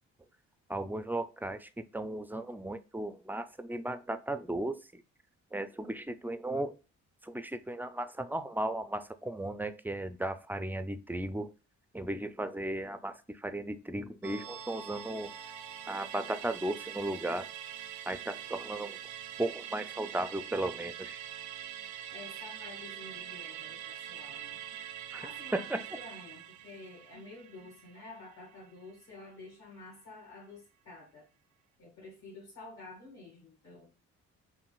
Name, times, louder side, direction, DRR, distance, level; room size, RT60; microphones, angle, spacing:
voice 1, 0.7-5.0 5.5-6.8 7.2-11.5 11.9-15.3 15.9-17.5 18.1-19.0 19.4-21.2 25.1-25.2 25.5-25.8, right 1 dB, 5° right, 11 dB, 0.3 m, -35 dB
Musical instrument, 14.2-28.9 29.2-29.3, right 10 dB, 85° right, 0.5 m, -44 dB
voice 2, 22.1-24.6 25.2-31.2 31.8-33.9, left 3 dB, 65° left, -5 dB, 1.9 m, -50 dB
5.8 x 2.5 x 2.3 m, 0.34 s
cardioid pair, 90°, 30 cm